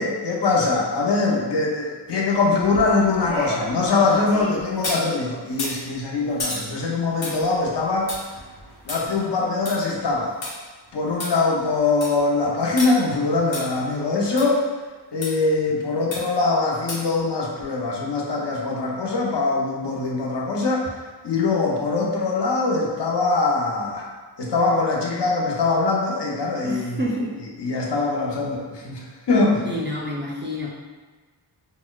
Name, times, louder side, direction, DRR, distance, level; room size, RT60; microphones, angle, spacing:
voice 1, 0.0-8.1 8.8-10.3 10.9-14.6 15.1-20.9 21.2-24.1 24.4-27.1 27.6-29.8, left 3 dB, 70° left, -2 dB, 0.7 m, -22 dB
sound 1, 2.6-5.1 5.5-10.5 10.9-11.0 11.2-11.3 11.7-12.2 12.8-12.9 13.5-13.6 14.4-14.5 15.2-15.3 16.1-16.4 16.9-17.2 17.6-17.7, left 1 dB, 90° left, 1.2 m, -33 dB
voice 2, 26.6-27.3 29.6-30.7, equal, 25° right, -4 dB, 0.4 m, -28 dB
4.0 x 2.2 x 2.2 m, 1.4 s
wide cardioid pair, 120°, 44 cm